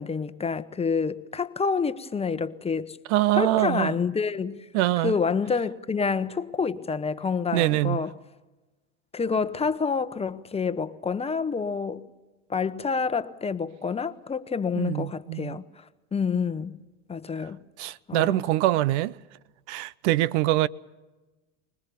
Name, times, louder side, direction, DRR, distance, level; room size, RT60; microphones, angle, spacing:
voice 1, 0.0-3.0 3.3-4.7 5.0-8.1 9.1-12.1 12.5-15.8 16.1-16.8 17.1-18.4, left 5 dB, 15° left, 1.0 m, -28 dB
voice 2, 3.1-3.9 4.7-5.1 7.5-8.0 14.8-15.6 17.8-19.2 19.7-20.7, right 16 dB, 70° right, 0.7 m, -24 dB
25.0 x 20.5 x 7.0 m
supercardioid pair, 100°, 35 cm